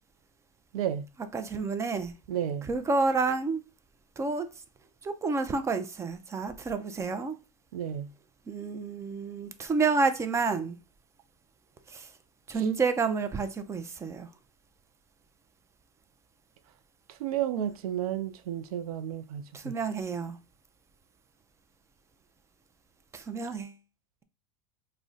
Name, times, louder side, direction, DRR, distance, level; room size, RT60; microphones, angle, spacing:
voice 1, 0.7-1.1 2.3-2.7 7.7-8.1 17.2-19.7, right 10 dB, 85° right, 0.4 m, -32 dB
voice 2, 1.3-2.1 2.6-3.6 4.2-4.5 5.0-7.4 8.5-10.8 11.9-12.1 12.5-14.3 19.5-20.4 23.1-23.8, right 4 dB, 15° right, 0.4 m, -29 dB
2.3 x 2.1 x 3.8 m
hypercardioid pair, 110°, 18 cm